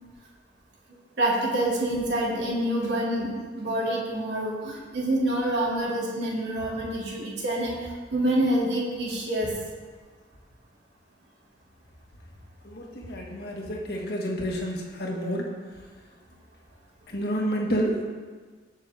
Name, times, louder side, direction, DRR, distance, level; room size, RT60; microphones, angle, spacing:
voice 1, 1.2-9.5, right 1 dB, 65° right, -4 dB, 2.9 m, -27 dB
voice 2, 12.6-15.5 17.1-18.0, equal, 60° left, -1 dB, 2.0 m, -29 dB
18.0 x 6.6 x 3.7 m, 1.5 s
head